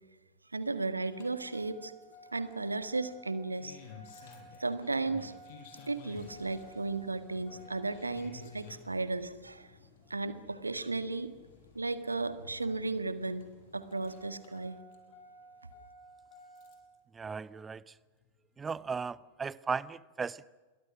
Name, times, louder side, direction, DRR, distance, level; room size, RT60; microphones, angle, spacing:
voice 1, 0.5-1.9 2.3-3.8 4.6-5.3 5.9-9.7 10.1-11.3 11.7-13.4 13.7-14.8, right 3 dB, 80° right, 12 dB, 1.7 m, -35 dB
Engine starting, 1.0-17.0 18.2-18.3, left 3 dB, 55° left, 5.3 m, -53 dB
voice 2, 17.2-17.8 18.6-20.4, right 5 dB, 15° right, 21 dB, 0.7 m, -36 dB
29.0 x 23.0 x 6.2 m, 1.3 s
figure-of-eight pair, 90°, 0 cm